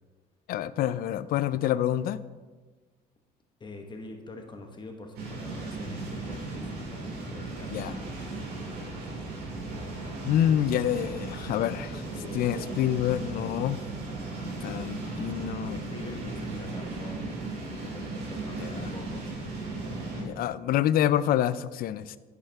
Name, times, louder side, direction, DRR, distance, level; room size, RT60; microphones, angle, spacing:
voice 1, 0.5-2.2 7.7-7.9 10.3-12.0 12.3-13.8 14.6-15.8 18.6-18.9 20.2-22.2, left 11 dB, 60° left, 16 dB, 0.4 m, -27 dB
voice 2, 3.6-8.0 12.1-13.2 15.6-17.2 17.8-19.3, left 2 dB, 25° left, 4 dB, 1.3 m, -44 dB
sound 1, 5.1-20.2, right 2 dB, 70° right, 2.9 m, -36 dB
10.0 x 6.7 x 3.5 m, 1.3 s
cardioid pair, 110°, 17 cm